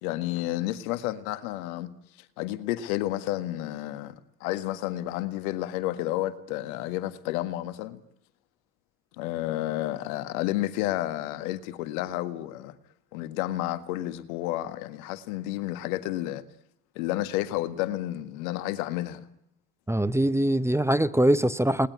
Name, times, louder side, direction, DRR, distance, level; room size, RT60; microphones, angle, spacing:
voice 1, 0.0-1.9 2.4-4.1 4.4-8.0 9.2-12.7 13.1-16.4 16.9-19.3, left 15 dB, 70° left, 1.8 m, -31 dB
voice 2, 19.9-21.9, right 1 dB, 5° right, 1.1 m, -23 dB
30.0 x 19.5 x 9.4 m
hypercardioid pair, 60°, 44 cm